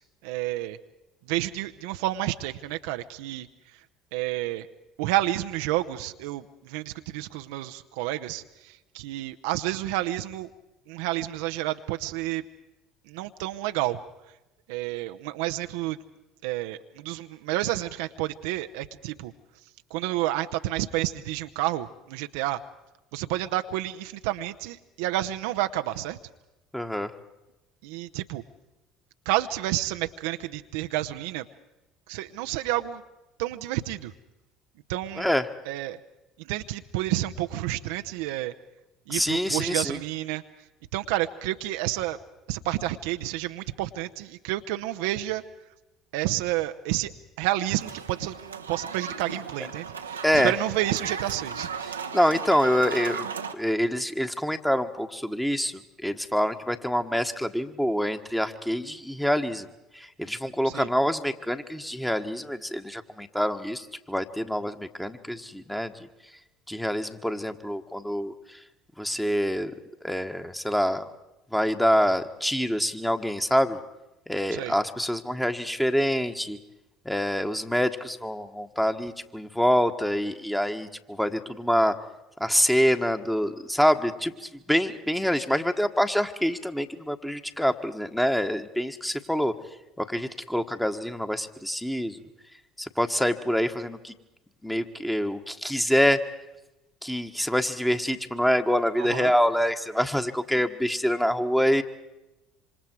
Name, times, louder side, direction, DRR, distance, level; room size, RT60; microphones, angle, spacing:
voice 1, 0.2-0.8 1.3-3.5 4.1-4.7 5.0-10.5 10.9-12.4 13.1-14.0 14.7-16.0 16.4-19.3 19.9-22.6 23.1-26.2 27.8-28.4 29.3-31.4 32.1-33.0 33.4-34.1 34.9-35.3 35.7-36.0 36.4-38.5 39.1-40.4 40.9-42.2 42.5-45.4 46.1-47.1 47.4-48.4 48.7-51.7 60.7-60.9 74.5-74.7 99.0-99.4, right 15 dB, 70° right, 8 dB, 0.8 m, -30 dB
voice 2, 26.7-27.1 35.2-35.5 39.1-40.0 50.2-50.5 51.9-53.3 53.5-59.7 59.9-65.9 66.7-68.6 69.0-69.7 70.0-71.1 71.5-73.8 74.3-76.6 77.0-81.9 82.4-89.5 90.0-92.3 92.8-94.1 94.6-96.2 97.0-101.8, equal, 5° left, 7 dB, 1.6 m, -26 dB
sound 1, 47.8-53.5, right 6 dB, 90° right, 1.1 m, -36 dB
26.5 x 26.0 x 4.7 m, 0.97 s
hypercardioid pair, 60°, 0 cm